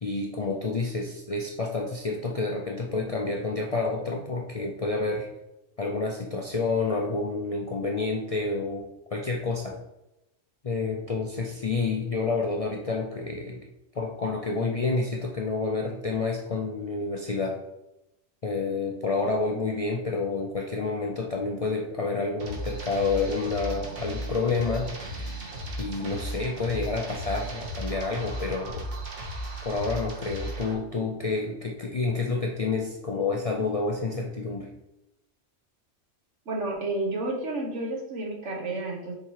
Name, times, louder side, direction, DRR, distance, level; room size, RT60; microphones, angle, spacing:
voice 1, 0.0-5.3 5.8-8.8 9.1-9.8 10.6-13.6 13.9-17.6 18.4-24.9 25.8-28.8 29.6-34.7, left 3 dB, 45° left, 0 dB, 0.4 m, -29 dB
sound 1, 22.4-30.7, right 1 dB, 50° right, 1.3 m, -35 dB
voice 2, 36.5-39.1, right 2 dB, 70° right, 0 dB, 1.5 m, -31 dB
6.9 x 2.9 x 4.6 m, 0.91 s
omnidirectional pair, 1.3 m